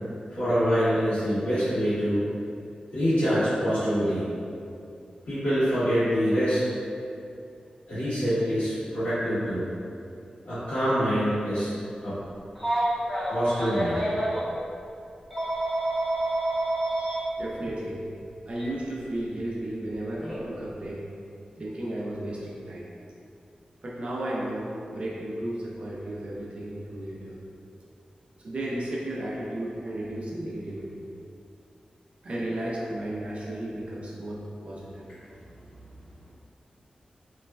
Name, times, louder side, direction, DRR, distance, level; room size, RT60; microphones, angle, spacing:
voice 1, 0.3-2.2 2.9-4.3 5.2-6.6 7.9-9.7 10.4-11.7 12.0-12.2 13.3-14.0, equal, 85° left, -14 dB, 1.5 m, -25 dB
Telephone, 12.5-14.4 15.3-17.2 18.5-18.7 20.2-20.4, right 1 dB, ahead, 0.8 m, -28 dB
voice 2, 17.4-18.0 18.5-21.0 21.6-22.9 23.8-27.4 28.4-30.9 32.2-35.0, right 1 dB, 50° right, -5 dB, 0.4 m, -34 dB
3.0 x 2.2 x 2.3 m, 2.5 s
wide cardioid pair, 130°, 3 cm